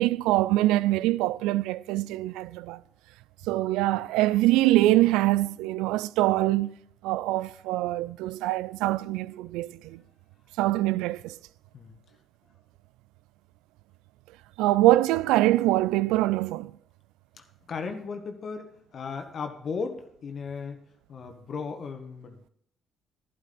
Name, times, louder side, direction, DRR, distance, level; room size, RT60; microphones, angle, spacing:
voice 1, 0.0-2.8 3.5-6.7 7.0-10.0 10.6-11.4 14.6-16.7, right 16 dB, 75° right, 0.3 m, -24 dB
voice 2, 17.7-20.8 21.1-22.5, left 5 dB, 50° left, 1.3 m, -36 dB
11.5 x 11.5 x 3.9 m
hypercardioid pair, 45°, 0 cm